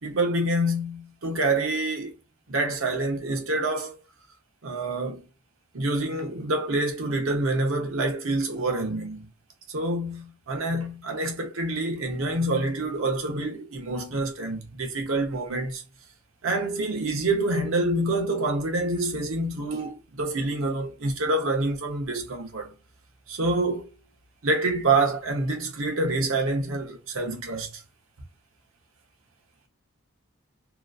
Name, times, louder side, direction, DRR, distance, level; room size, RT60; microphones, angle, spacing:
voice 1, 0.0-2.1 2.5-4.0 4.6-5.3 5.7-9.3 9.7-15.8 16.4-22.8 23.3-23.9 24.4-27.8, right 2 dB, 85° right, 0.9 m, -27 dB
2.9 x 2.4 x 2.4 m
head